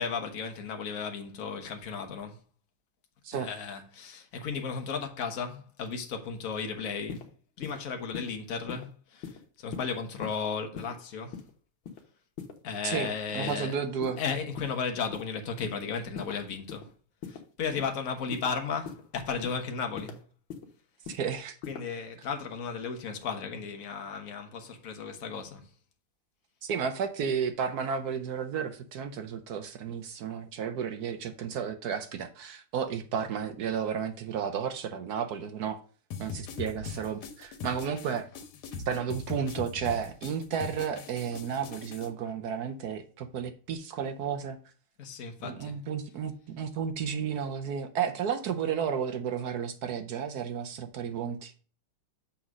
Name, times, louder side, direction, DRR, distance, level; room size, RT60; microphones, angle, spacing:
voice 1, 0.0-2.4 3.3-7.3 7.6-11.4 12.6-13.8 14.2-16.9 17.3-20.2 21.6-25.7 45.0-45.8, left 5 dB, 50° left, 1.3 m, -35 dB
sound 1, 7.1-7.2 7.6-7.8 8.1-8.3 8.7-8.8 9.2-9.4 9.7-9.9 10.2-10.4 10.7-10.9 11.3-11.5 11.8-12.0 12.4-12.5 12.9-13.1 13.5-13.6 14.0-14.2 14.6-14.8 15.1-15.3 15.6-15.8 16.1-16.4 16.7-16.8 17.2-17.4 17.8-17.9 18.3-18.5 18.9-19.0 19.4-19.6 20.0-20.1 20.5-20.7 21.0-21.2 21.6-21.8, left 7 dB, 70° left, 1.8 m, -40 dB
voice 2, 12.8-14.2 21.1-21.6 26.6-35.8 36.2-38.3 38.9-44.6 45.4-51.5, right 7 dB, 70° right, 1.0 m, -32 dB
sound 2, 36.1-42.1, left 5 dB, 85° left, 1.9 m, -40 dB
7.1 x 3.9 x 6.1 m
omnidirectional pair, 2.3 m